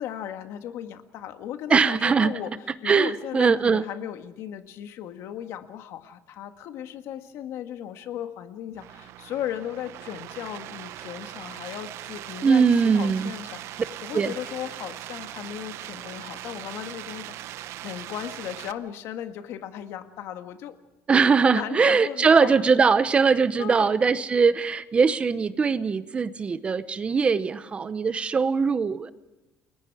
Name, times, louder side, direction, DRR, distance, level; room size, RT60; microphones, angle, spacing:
voice 1, 0.0-2.5 2.8-20.8 21.5-22.6 23.6-24.0, left 10 dB, 70° left, 7 dB, 1.8 m, -36 dB
voice 2, 1.7-2.3 2.8-3.8 12.4-13.3 14.1-14.3 21.1-29.1, right 5 dB, 25° right, 14 dB, 0.8 m, -21 dB
sound 1, 8.7-18.7, right 13 dB, 70° right, 0.8 m, -40 dB
30.0 x 21.5 x 4.9 m, 1.0 s
cardioid pair, 160°, 5 cm